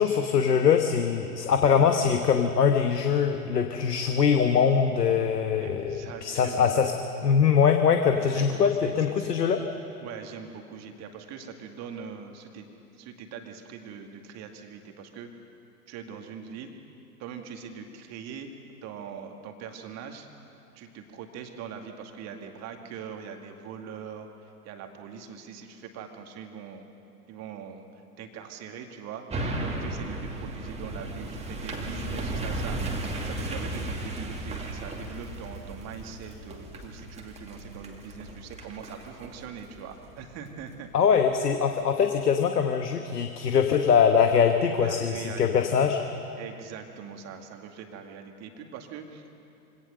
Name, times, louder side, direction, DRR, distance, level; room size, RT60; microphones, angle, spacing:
voice 1, 0.0-6.9 7.2-9.6 40.9-46.0, left 7 dB, 75° left, 6 dB, 1.3 m, -22 dB
voice 2, 5.6-6.7 8.1-9.4 10.0-12.7 12.9-15.3 15.9-16.7 17.2-18.5 18.8-20.3 20.7-26.9 27.3-29.2 29.6-40.9 44.8-45.8 46.4-49.3, right 7 dB, 35° right, 4 dB, 2.1 m, -42 dB
sound 1, 29.3-40.7 41.2-41.3, right 2 dB, 15° right, 2.3 m, -35 dB
24.5 x 18.0 x 6.6 m, 2.7 s
figure-of-eight pair, 100°, 48 cm